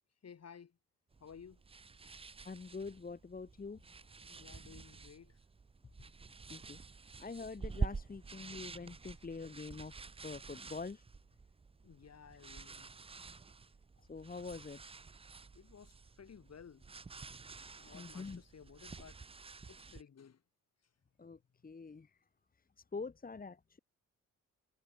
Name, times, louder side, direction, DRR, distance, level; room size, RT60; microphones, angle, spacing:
voice 1, 0.2-0.8 1.2-1.6 2.0-2.1 4.2-5.4 7.0-7.1 9.1-9.2 11.8-13.1 15.5-17.0 17.8-19.2 19.7-20.4 20.8-20.9, left 7 dB, 50° left, 2.7 m, -56 dB
sound 1, 1.1-20.0, right 4 dB, 15° right, 0.5 m, -48 dB
voice 2, 2.4-3.8 6.5-6.8 7.2-9.9 10.2-11.0 14.1-14.8 17.8-18.4 21.2-22.1 22.9-23.8, left 4 dB, 25° left, 1.4 m, -45 dB
cardioid pair, 80°, 34 cm